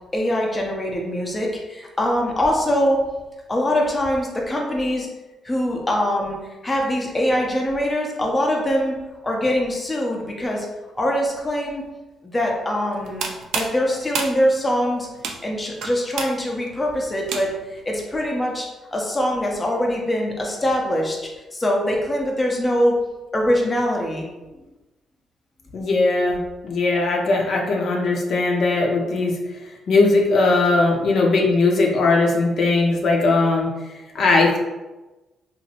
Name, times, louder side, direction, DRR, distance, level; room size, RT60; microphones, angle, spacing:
voice 1, 0.1-3.0 3.5-5.1 5.4-6.4 6.6-9.0 9.2-10.7 11.0-11.8 12.3-13.3 13.5-15.1 15.4-21.2 21.5-22.9 23.3-24.3, equal, 20° left, -1 dB, 0.6 m, -23 dB
sound 1, 12.9-17.8, right 5 dB, 80° right, 0.4 m, -31 dB
voice 2, 25.7-26.4 26.6-29.4 29.9-33.7 34.1-34.6, left 3 dB, 65° left, -1 dB, 0.6 m, -19 dB
2.9 x 2.5 x 2.8 m, 1.1 s
cardioid pair, 90°, 0 cm